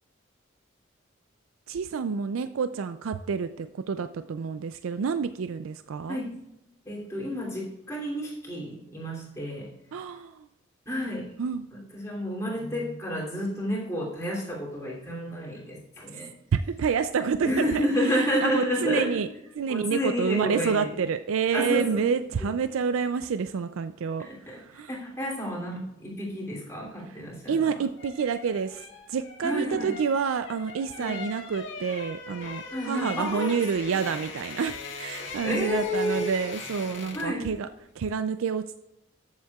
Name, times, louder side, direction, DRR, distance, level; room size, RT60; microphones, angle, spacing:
voice 1, 1.7-6.2 9.9-10.5 11.4-11.7 16.1-16.2 16.5-19.3 19.6-24.9 27.1-27.2 27.5-37.7 38.0-38.8, right 6 dB, 85° right, 10 dB, 0.4 m, -28 dB
voice 2, 6.8-9.7 10.9-16.3 17.4-19.2 19.7-20.9 21.5-22.0 24.2-27.6 29.4-30.0 31.0-31.2 32.7-33.8 35.4-36.2 37.1-37.5, equal, 15° left, -4 dB, 2.8 m, -30 dB
sound 1, 27.4-37.4 37.7-37.9, left 3 dB, 65° left, 1.8 m, -40 dB
13.5 x 7.4 x 2.3 m, 0.90 s
head